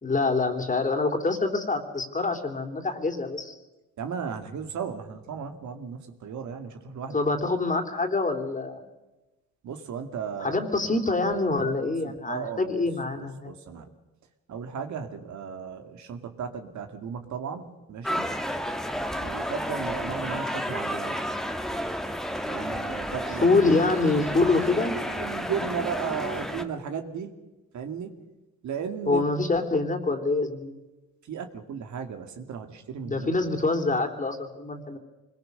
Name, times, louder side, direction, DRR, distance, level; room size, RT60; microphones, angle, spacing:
voice 1, 0.0-3.5 7.1-8.9 10.4-13.5 23.4-25.0 29.1-30.8 33.0-35.0, left 3 dB, 25° left, 5 dB, 3.4 m, -25 dB
voice 2, 4.0-7.2 9.6-10.6 11.6-12.9 13.2-13.9 14.5-18.3 19.2-21.2 22.4-23.9 24.9-27.3 27.7-28.1 28.6-29.3 31.2-33.3, right 7 dB, 70° right, 6 dB, 2.4 m, -35 dB
sound 1, 18.0-26.6, equal, ahead, 1.7 m, -31 dB
25.5 x 21.5 x 6.8 m, 1.1 s
cardioid pair, 90°, 30 cm